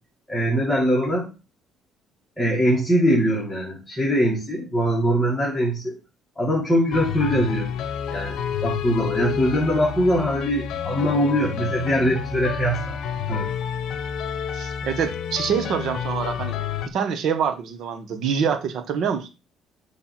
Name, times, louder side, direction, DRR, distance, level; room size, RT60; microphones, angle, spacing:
voice 1, 0.3-1.3 2.4-5.9 6.4-7.7 8.1-13.0 13.3-13.5, equal, 5° left, 2.2 m, -22 dB
sound 1, 6.9-16.9, left 8 dB, 65° left, 0.8 m, -29 dB
voice 2, 14.5-16.6 16.9-19.3, right 7 dB, 60° right, 1.3 m, -25 dB
8.6 x 3.5 x 6.0 m
cardioid pair, 135°, 0 cm